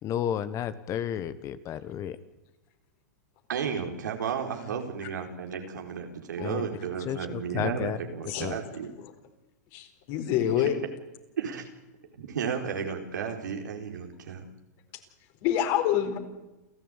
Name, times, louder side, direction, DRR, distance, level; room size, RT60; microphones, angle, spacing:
voice 1, 0.0-2.2 6.4-6.6 7.0-8.0 8.4-8.6, left 10 dB, 35° left, 13 dB, 1.4 m, -32 dB
voice 2, 3.5-8.9 11.4-11.7 12.2-14.4, right 6 dB, 85° right, 3 dB, 4.6 m, -33 dB
voice 3, 9.7-10.8 15.4-16.2, left 10 dB, 50° left, 6 dB, 4.4 m, -27 dB
29.0 x 14.5 x 9.2 m, 1.0 s
hypercardioid pair, 125°, 10 cm